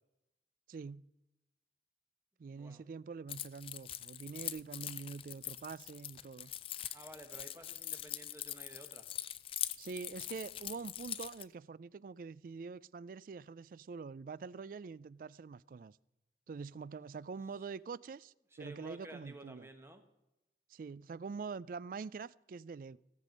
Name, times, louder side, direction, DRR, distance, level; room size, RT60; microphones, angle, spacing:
voice 1, 0.7-1.0 2.4-6.5 9.8-16.0 16.5-19.7 20.7-23.0, right 5 dB, 50° right, 0.3 m, -45 dB
voice 2, 2.5-2.8 6.9-9.1 17.5-17.6 18.5-20.0, right 1 dB, 15° right, 1.1 m, -53 dB
Keys jangling, 3.3-11.4, left 12 dB, 30° left, 0.4 m, -43 dB
16.5 x 7.5 x 5.2 m
head